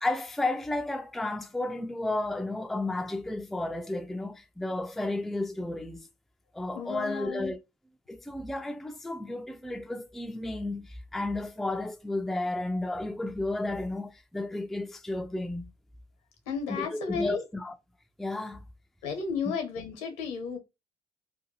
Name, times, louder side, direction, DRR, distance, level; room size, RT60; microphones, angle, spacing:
voice 1, 0.0-6.0 6.5-7.6 8.1-10.9 11.1-15.7 16.7-17.7 18.2-18.6, left 2 dB, ahead, 0.4 m, -32 dB
voice 2, 6.7-7.5 16.5-17.4 19.0-20.6, left 5 dB, 70° left, 0.9 m, -33 dB
2.6 x 2.2 x 2.7 m
hypercardioid pair, 55°, 15 cm